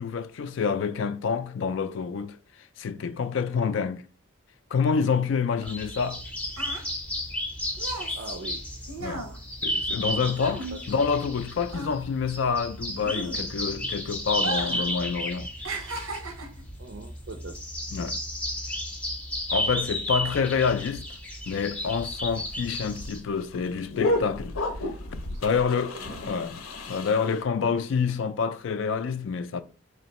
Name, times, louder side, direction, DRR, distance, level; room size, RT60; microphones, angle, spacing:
voice 1, 0.0-2.4 2.8-4.1 4.7-6.2 9.0-9.3 9.6-15.5 17.9-18.2 19.5-21.1 21.5-24.6 25.4-26.0 26.3-26.6 26.9-29.6, left 5 dB, 60° left, 0.3 m, -27 dB
sound 1, 5.7-23.2, left 1 dB, 5° left, 0.6 m, -33 dB
sound 2, 6.2-11.4 11.7-13.8 14.3-14.9 15.2-16.7 17.4-17.6, right 3 dB, 90° right, 0.7 m, -37 dB
voice 2, 8.1-8.6 10.7-10.8 16.8-17.6 25.2-25.4 25.7-26.2 27.6-27.7, right 3 dB, 55° right, 0.4 m, -41 dB
sound 3, 21.8-27.4, left 1 dB, 85° left, 0.7 m, -32 dB
4.3 x 3.1 x 2.9 m
head